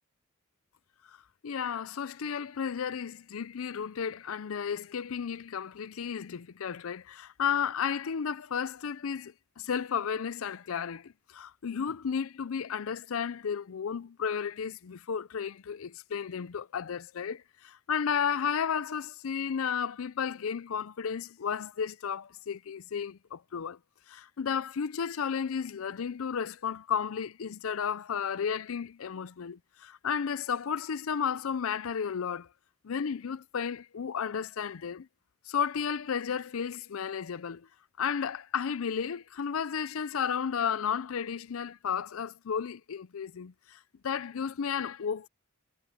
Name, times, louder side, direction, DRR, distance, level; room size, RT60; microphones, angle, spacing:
voice 1, 1.4-23.8 24.1-32.5 32.8-35.1 35.5-37.7 38.0-45.3, left 7 dB, 80° left, 0.5 m, -33 dB
head